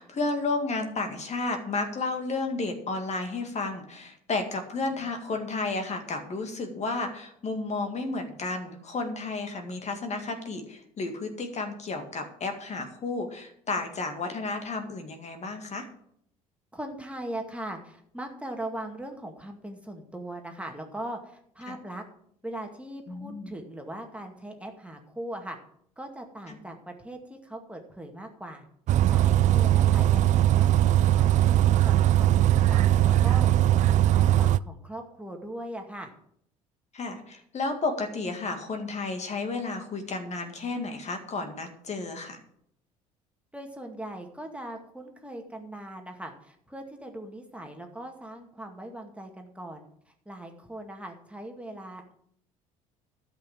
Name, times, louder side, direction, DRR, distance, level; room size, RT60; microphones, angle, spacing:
voice 1, 0.0-15.9 21.7-21.8 23.1-23.5 26.5-26.6 36.9-42.4, left 3 dB, 40° left, 5 dB, 2.1 m, -32 dB
voice 2, 16.7-22.0 22.4-25.6 26.0-31.4 31.8-33.5 33.8-36.1 43.5-52.1, right 1 dB, 5° right, 3 dB, 2.1 m, -40 dB
Bus, 28.9-34.6, right 12 dB, 45° right, 0.4 m, -20 dB
12.5 x 5.8 x 7.3 m, 0.69 s
hypercardioid pair, 60°, 17 cm